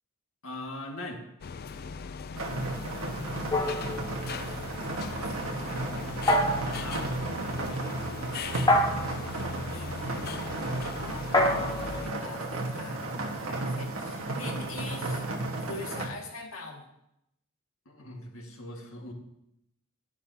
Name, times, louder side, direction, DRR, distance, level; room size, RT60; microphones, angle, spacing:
voice 1, 0.4-1.2 6.6-7.1 17.9-19.1, left 1 dB, 70° left, 1 dB, 1.9 m, -40 dB
sound 1, 1.4-12.1, left 5 dB, 45° left, 0.4 m, -39 dB
sound 2, 2.3-16.1, right 2 dB, 80° right, 1.5 m, -34 dB
voice 2, 2.9-4.5 4.8-5.9 9.1-15.3 15.6-16.9, left 3 dB, 90° left, 0 dB, 2.0 m, -45 dB
sound 3, 3.5-4.6 6.3-6.9 8.7-9.3 11.3-13.1, left 1 dB, 20° left, 0.9 m, -27 dB
12.5 x 10.5 x 2.8 m, 0.81 s
head